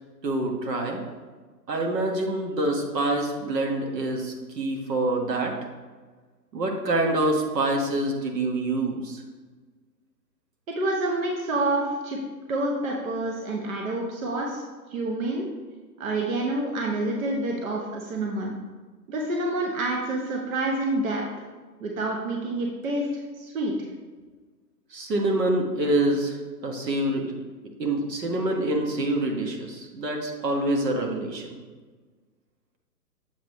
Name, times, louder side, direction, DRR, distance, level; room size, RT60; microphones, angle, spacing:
voice 1, 0.2-1.0 1.7-5.5 6.5-9.2 24.9-27.3 27.8-31.5, right 1 dB, 75° right, 2 dB, 1.5 m, -26 dB
voice 2, 10.7-12.2 12.5-14.6 14.9-15.5 16.0-18.5 19.1-21.2 21.8-23.7 25.2-25.4, right 2 dB, 55° right, 0 dB, 1.1 m, -28 dB
7.4 x 5.4 x 3.0 m, 1.4 s
hypercardioid pair, 150°, 50 cm